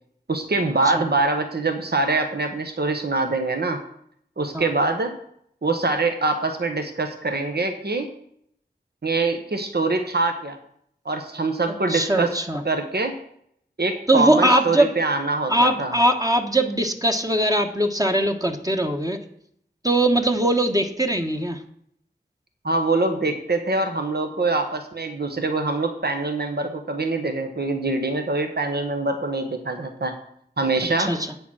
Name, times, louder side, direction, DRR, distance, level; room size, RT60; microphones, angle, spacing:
voice 1, 0.3-3.8 4.4-5.2 5.6-8.1 9.0-10.6 11.0-12.3 12.6-13.2 13.8-15.9 22.6-30.1 30.6-31.1, right 3 dB, 60° right, 6 dB, 1.1 m, -24 dB
voice 2, 11.9-12.6 14.1-14.9 15.5-19.2 19.8-21.6 31.0-31.2, right 1 dB, 20° right, 3 dB, 1.1 m, -21 dB
8.6 x 6.9 x 6.3 m, 0.68 s
wide cardioid pair, 45°, 18 cm